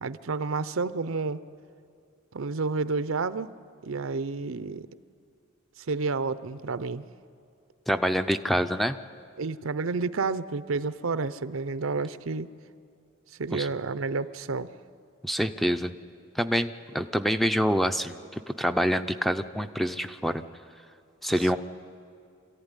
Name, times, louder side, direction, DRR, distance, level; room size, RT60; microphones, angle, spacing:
voice 1, 0.0-1.4 2.3-3.5 3.8-4.9 5.9-7.1 9.4-12.5 13.4-14.7, right 4 dB, 80° right, 14 dB, 0.7 m, -30 dB
voice 2, 7.9-9.0 13.5-13.7 15.2-15.9 16.4-20.4 21.2-21.6, equal, ahead, 9 dB, 0.5 m, -26 dB
26.0 x 14.5 x 9.8 m, 2.4 s
head